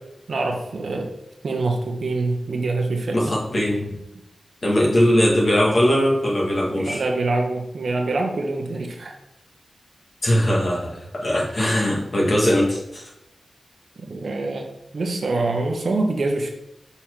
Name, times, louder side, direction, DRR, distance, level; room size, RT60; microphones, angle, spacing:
voice 1, 0.3-1.1 1.4-3.3 6.7-9.1 14.0-16.5, right 2 dB, 65° right, 3 dB, 0.9 m, -25 dB
voice 2, 3.1-4.0 4.6-7.0 10.2-13.0, equal, 40° left, -3 dB, 1.8 m, -20 dB
5.6 x 4.3 x 4.6 m, 0.87 s
wide cardioid pair, 120°, 0 cm